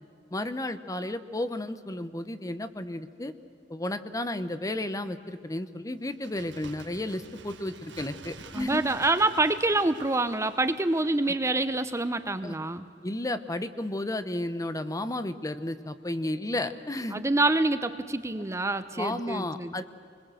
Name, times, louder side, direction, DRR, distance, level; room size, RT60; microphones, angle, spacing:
voice 1, 0.3-3.3 3.7-8.8 11.3-11.4 12.4-12.6 13.0-17.2 18.9-19.8, left 1 dB, 20° left, 11 dB, 0.9 m, -33 dB
Bird, 6.1-11.6 11.9-12.0, right 4 dB, 75° right, 1.6 m, -49 dB
voice 2, 8.5-12.9 17.1-19.8, right 2 dB, 15° right, 11 dB, 0.7 m, -26 dB
25.5 x 21.5 x 7.8 m, 2.4 s
head